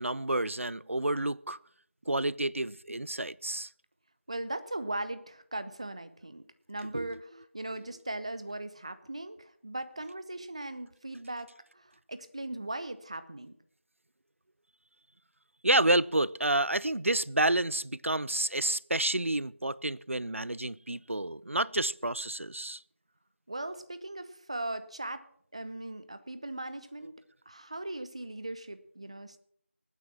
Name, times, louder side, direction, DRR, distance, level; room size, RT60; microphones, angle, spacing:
voice 1, 0.0-1.6 2.1-3.7 6.9-7.1 15.6-22.8, right 1 dB, 80° right, 0.6 m, -29 dB
voice 2, 4.3-6.4 6.7-13.5 23.5-25.3 25.5-29.4, right 2 dB, 30° right, 0.8 m, -39 dB
19.5 x 9.5 x 6.0 m
figure-of-eight pair, 175°, 7 cm